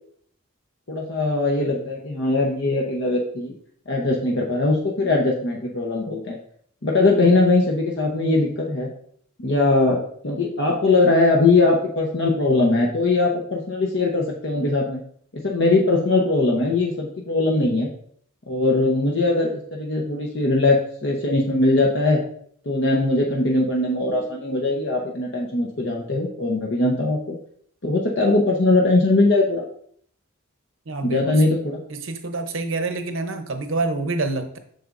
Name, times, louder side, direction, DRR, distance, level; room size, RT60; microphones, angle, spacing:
voice 1, 0.9-3.5 3.9-6.4 6.8-8.9 9.4-15.0 15.3-17.9 18.5-22.2 22.6-27.3 27.8-29.6 31.0-31.8, left 2 dB, 55° left, -2 dB, 0.9 m, -20 dB
voice 2, 30.9-31.4 31.9-34.6, right 3 dB, 65° right, 7 dB, 0.8 m, -27 dB
7.7 x 6.4 x 2.6 m, 0.62 s
head